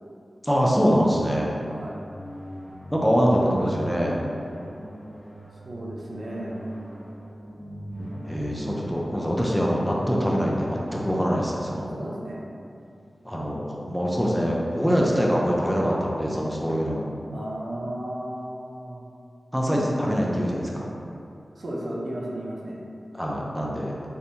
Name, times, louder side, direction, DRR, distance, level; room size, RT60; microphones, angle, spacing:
voice 1, 0.4-1.5 2.9-4.2 8.2-11.9 13.2-17.1 19.5-20.9 23.1-23.9, equal, ahead, -3 dB, 0.5 m, -24 dB
sound 1, 1.3-12.9, equal, 25° right, 1.2 m, -41 dB
voice 2, 1.7-2.0 5.6-6.6 11.1-11.2 11.9-12.4 17.3-19.0 21.5-22.8, right 1 dB, 65° right, -4 dB, 0.5 m, -34 dB
3.4 x 2.6 x 2.6 m, 2.5 s
cardioid pair, 50°, 0 cm